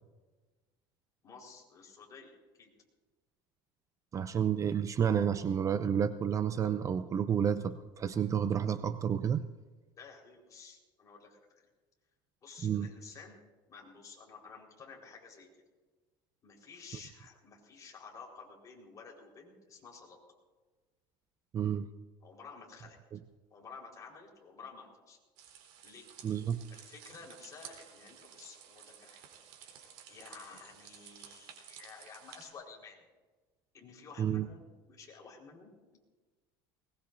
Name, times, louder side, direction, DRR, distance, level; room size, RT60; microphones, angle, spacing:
voice 1, 1.2-2.7 10.0-11.6 12.4-13.4 13.7-15.5 16.4-20.2 22.2-23.0 23.5-25.2 25.8-26.1 26.7-29.2 29.6-29.7 30.1-33.0 33.7-36.0, left 5 dB, 30° left, -1 dB, 4.3 m, -52 dB
voice 2, 4.1-9.5 12.6-12.9 21.5-21.9 23.1-23.2 26.2-26.6 34.2-34.5, right 8 dB, 30° right, 12 dB, 0.5 m, -30 dB
sound 1, 25.4-32.5, right 9 dB, 75° right, 3.8 m, -54 dB
21.0 x 20.0 x 2.6 m, 1.3 s
cardioid pair, 135°, 11 cm